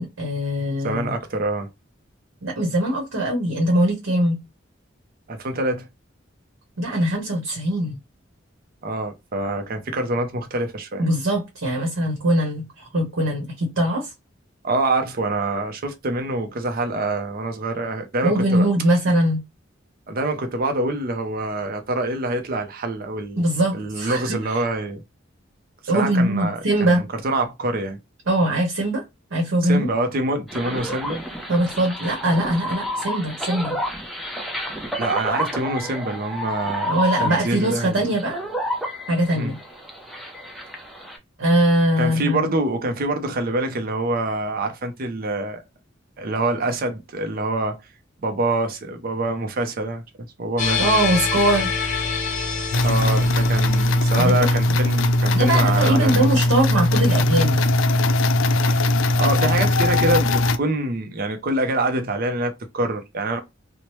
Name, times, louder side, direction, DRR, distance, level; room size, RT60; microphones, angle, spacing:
voice 1, 0.0-1.1 2.4-4.4 6.8-8.0 11.0-14.1 18.2-19.4 23.4-24.5 25.9-27.0 28.3-29.0 29.3-29.9 31.5-33.8 36.8-38.4 39.1-39.6 41.4-42.5 50.8-51.7 54.2-54.5 55.3-57.6, right 1 dB, 80° right, 0.9 m, -21 dB
voice 2, 0.8-1.7 5.3-5.9 8.8-11.1 14.6-18.7 20.1-23.4 23.8-25.0 25.9-28.0 29.6-31.2 35.0-38.1 39.3-39.5 42.0-45.6 46.2-47.8 48.2-50.0 50.4-50.8 52.8-56.3 58.5-58.8 59.2-63.4, right 2 dB, 50° right, 0.5 m, -25 dB
sound 1, 30.5-41.2, equal, ahead, 0.5 m, -30 dB
sound 2, 50.6-55.7, left 5 dB, 40° left, 0.9 m, -27 dB
sound 3, 52.7-60.6, left 1 dB, 90° left, 0.4 m, -19 dB
3.0 x 2.1 x 2.9 m
head